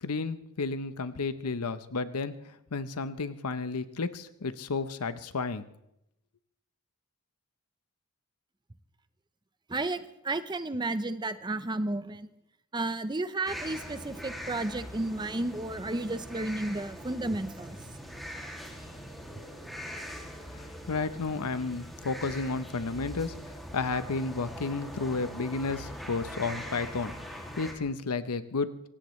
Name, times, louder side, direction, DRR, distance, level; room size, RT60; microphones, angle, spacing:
voice 1, 0.0-5.7 20.5-23.4 23.7-28.7, left 4 dB, 90° left, 12 dB, 0.8 m, -32 dB
voice 2, 9.7-12.3 12.7-17.8, right 2 dB, 20° right, 12 dB, 0.7 m, -32 dB
sound 1, 13.5-27.7, equal, ahead, 2.4 m, -42 dB
24.0 x 17.5 x 3.2 m, 0.83 s
head